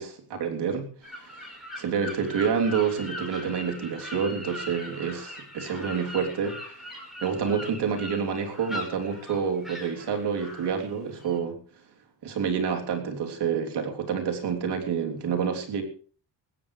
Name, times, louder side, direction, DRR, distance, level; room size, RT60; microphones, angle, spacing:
voice 1, 0.0-1.5 1.8-6.6 7.2-11.6 12.2-15.8, right 6 dB, 70° right, 3 dB, 3.4 m, -28 dB
sound 1, 1.0-11.4, left 1 dB, ahead, 5.2 m, -40 dB
20.0 x 16.0 x 3.3 m, 0.42 s
wide cardioid pair, 165°, 42 cm